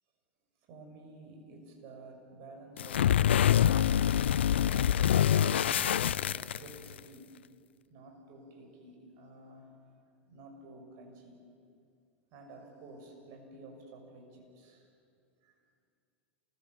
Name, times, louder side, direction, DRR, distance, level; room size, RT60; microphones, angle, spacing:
voice 1, 0.7-7.3 7.9-9.8 10.2-11.4 12.3-14.9 15.4-15.6, right 2 dB, 50° right, 3 dB, 6.5 m, -52 dB
sound 1, 2.8-7.0, left 10 dB, 75° left, 0.5 m, -25 dB
28.0 x 21.0 x 8.2 m, 2.3 s
hypercardioid pair, 90°, 6 cm